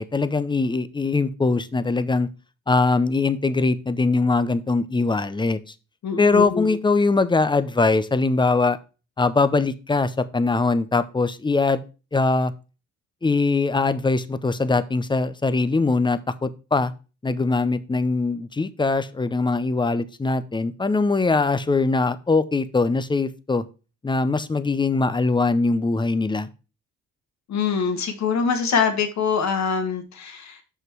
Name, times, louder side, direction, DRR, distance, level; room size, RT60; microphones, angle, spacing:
voice 1, 0.0-2.3 2.7-5.7 6.2-8.8 9.2-11.8 12.1-12.5 13.2-16.9 17.2-23.6 24.0-26.5, left 3 dB, 15° left, 14 dB, 0.6 m, -22 dB
voice 2, 6.0-6.8 27.5-30.6, left 6 dB, 65° left, 6 dB, 1.8 m, -24 dB
6.0 x 5.7 x 4.6 m, 0.32 s
cardioid pair, 90°, 30 cm